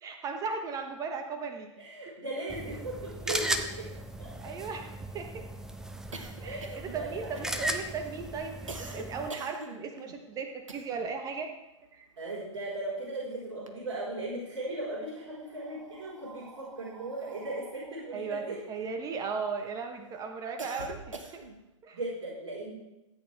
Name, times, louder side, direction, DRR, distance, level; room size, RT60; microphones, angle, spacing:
voice 1, 0.0-1.7 4.4-5.4 6.4-11.5 11.9-12.1 18.1-21.4 21.8-22.0, right 5 dB, 20° right, 5 dB, 1.1 m, -37 dB
voice 2, 1.8-3.9 4.2-4.3 6.4-7.4 12.2-18.6 21.9-22.7, right 2 dB, 55° right, -8 dB, 4.5 m, -37 dB
sound 1, 2.5-9.3, right 1 dB, 5° right, 0.6 m, -37 dB
sound 2, 4.2-11.2 11.5-13.1 13.4-14.4 15.1-19.6 20.0-21.7, right 3 dB, 75° right, 1.2 m, -47 dB
15.0 x 8.8 x 3.5 m, 0.96 s
figure-of-eight pair, 105°, 16 cm